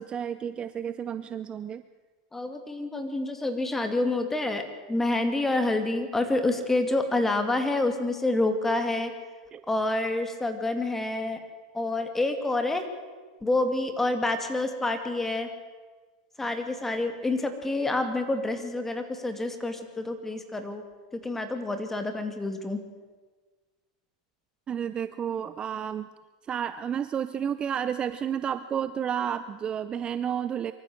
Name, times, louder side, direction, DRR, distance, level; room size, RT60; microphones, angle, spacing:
voice 1, 0.0-1.8 9.5-9.6 24.7-26.1 26.5-30.7, right 8 dB, 25° right, 13 dB, 0.6 m, -31 dB
voice 2, 2.3-9.1 9.7-11.4 11.7-12.9 13.4-15.5 16.4-20.8 21.1-22.8, left 2 dB, 10° left, 7 dB, 2.4 m, -28 dB
24.5 x 14.0 x 7.9 m, 1.4 s
supercardioid pair, 130°, 4 cm